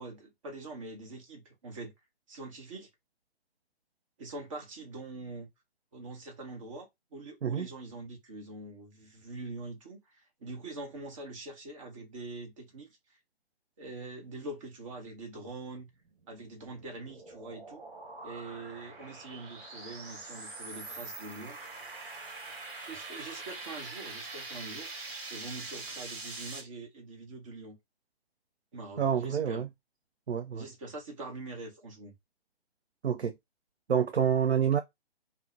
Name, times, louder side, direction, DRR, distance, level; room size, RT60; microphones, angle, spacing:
voice 1, 0.0-1.9 2.3-2.9 4.2-5.5 5.9-6.9 7.1-10.0 10.4-13.0 13.8-15.9 16.3-17.8 18.2-21.6 22.9-24.9 25.3-27.8 28.7-29.6 30.5-32.1, right 2 dB, 30° right, 0.9 m, -44 dB
sound 1, 16.0-26.6, right 3 dB, 55° right, 1.2 m, -44 dB
voice 2, 29.0-29.7 30.3-30.7 33.0-33.3 33.9-34.8, right 8 dB, 85° right, 0.5 m, -27 dB
3.6 x 2.0 x 2.5 m
figure-of-eight pair, 140°, 32 cm